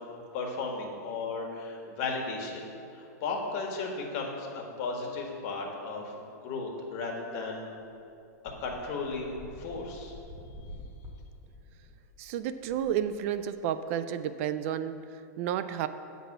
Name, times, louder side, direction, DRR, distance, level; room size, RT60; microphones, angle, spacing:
voice 1, 0.3-2.6 2.9-6.1 6.4-7.7 8.6-10.1, left 3 dB, 45° left, 0 dB, 1.5 m, -35 dB
sound 1, 8.5-13.6, left 1 dB, 15° right, 1.3 m, -48 dB
voice 2, 12.2-15.9, right 9 dB, 50° right, 12 dB, 0.3 m, -31 dB
8.2 x 4.0 x 6.6 m, 2.8 s
hypercardioid pair, 140°, 9 cm